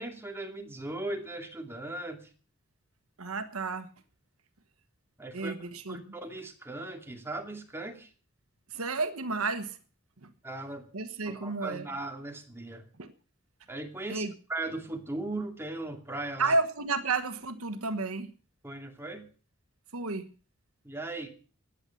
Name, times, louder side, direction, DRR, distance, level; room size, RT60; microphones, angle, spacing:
voice 1, 0.0-2.3 5.2-5.5 5.9-8.1 10.4-10.9 11.2-12.8 13.7-16.5 18.6-19.2 20.8-21.3, right 2 dB, 10° right, 3 dB, 2.4 m, -38 dB
voice 2, 3.2-3.9 5.3-6.0 8.7-9.8 10.2-10.3 10.9-11.9 13.0-13.1 14.1-14.3 16.4-18.3 19.9-20.3, right 3 dB, 85° right, 9 dB, 1.3 m, -31 dB
15.0 x 9.8 x 6.9 m, 0.40 s
head